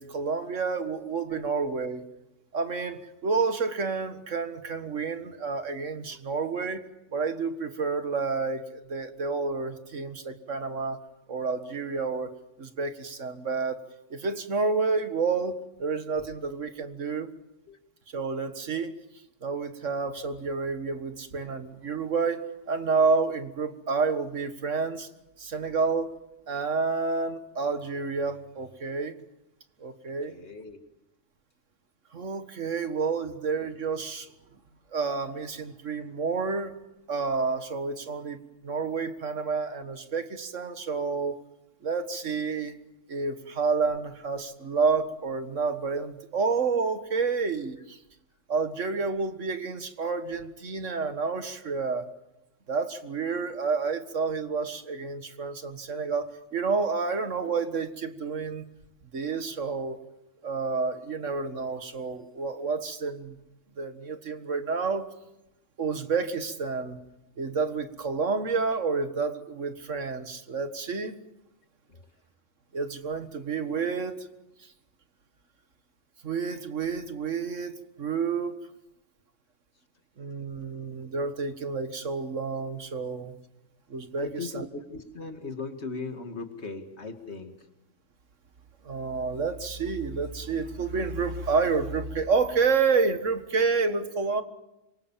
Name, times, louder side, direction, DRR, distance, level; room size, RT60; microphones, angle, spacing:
voice 1, 0.0-2.0 2.5-6.8 7.1-11.0 11.3-12.3 12.6-13.8 14.1-17.3 18.1-18.9 19.4-25.1 25.4-26.2 26.5-29.2 29.8-30.3 32.1-34.3 34.9-36.8 37.1-41.4 41.8-42.8 43.1-48.0 48.5-52.1 52.7-58.6 59.1-60.0 60.4-63.4 63.8-65.1 65.8-67.0 67.4-71.1 72.7-74.3 76.2-77.7 78.0-78.6 80.2-83.4 83.9-84.7 88.8-94.4, right 4 dB, 85° right, 9 dB, 2.0 m, -29 dB
voice 2, 30.2-30.8 71.9-72.0 84.2-87.5, left 4 dB, 65° left, 5 dB, 2.6 m, -38 dB
26.5 x 24.0 x 7.4 m, 0.93 s
omnidirectional pair, 1.2 m